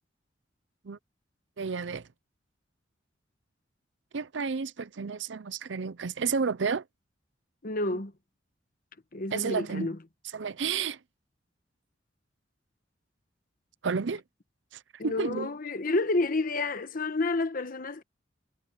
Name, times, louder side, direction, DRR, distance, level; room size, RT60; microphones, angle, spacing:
voice 1, 1.6-2.1 4.1-6.8 9.3-9.9 10.3-11.0 13.8-14.2 14.7-15.5, right 5 dB, 80° right, 0.6 m, -31 dB
voice 2, 7.6-8.1 9.1-10.0 15.0-18.0, left 2 dB, 50° left, 1.2 m, -29 dB
head